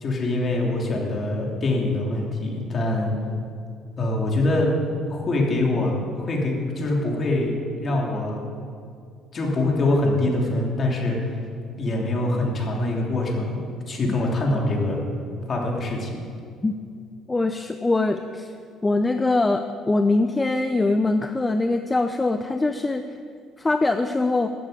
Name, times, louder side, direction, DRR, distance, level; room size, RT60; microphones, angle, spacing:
voice 1, 0.0-3.1 4.0-4.7 5.1-8.4 9.3-11.4 11.8-15.0 15.5-16.2, left 2 dB, 35° left, -1 dB, 3.0 m, -24 dB
voice 2, 17.3-18.5 18.8-23.0 23.6-24.5, left 2 dB, 15° left, 7 dB, 0.5 m, -22 dB
13.5 x 8.2 x 9.2 m, 2.3 s
cardioid pair, 120°, 0 cm